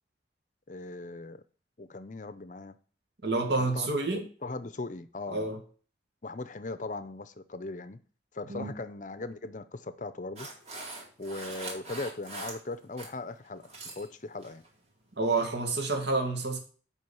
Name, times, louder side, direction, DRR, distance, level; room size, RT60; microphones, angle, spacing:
voice 1, 0.7-1.4 1.8-2.7 3.6-5.5 6.2-8.0 8.3-10.5 11.2-14.6, left 2 dB, 40° left, 0.6 m, -39 dB
voice 2, 3.2-4.3 5.3-5.6 8.5-8.8 15.2-16.6, right 3 dB, 65° right, 1.9 m, -29 dB
sound 1, 10.4-13.1 13.5-14.1 14.4-14.7 15.2-15.4, right 2 dB, 35° right, 2.3 m, -42 dB
7.9 x 5.1 x 7.0 m
head